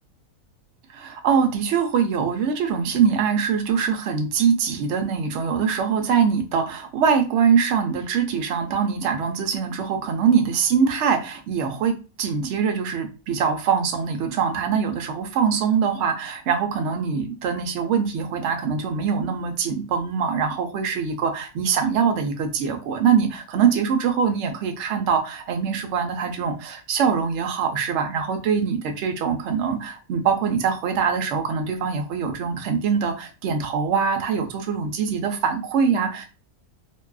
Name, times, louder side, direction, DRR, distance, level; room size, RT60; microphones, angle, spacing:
voice 1, 0.9-36.3, right 6 dB, 70° right, 4 dB, 0.7 m, -23 dB
2.6 x 2.3 x 2.3 m, 0.31 s
omnidirectional pair, 1.6 m